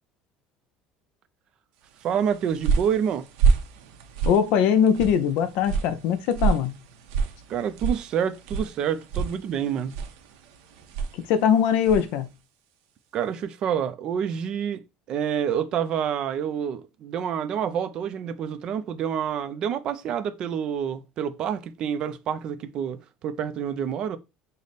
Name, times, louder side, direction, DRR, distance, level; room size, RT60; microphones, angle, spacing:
voice 1, 2.0-3.3 7.5-9.9 13.1-14.8 15.1-24.2, right 8 dB, 35° right, 0.4 m, -28 dB
sound 1, 2.1-12.2, right 5 dB, 90° right, 0.7 m, -28 dB
voice 2, 4.3-6.7 11.3-12.3, left 8 dB, 60° left, 0.5 m, -21 dB
5.0 x 2.1 x 4.0 m
cardioid pair, 175°, 2 cm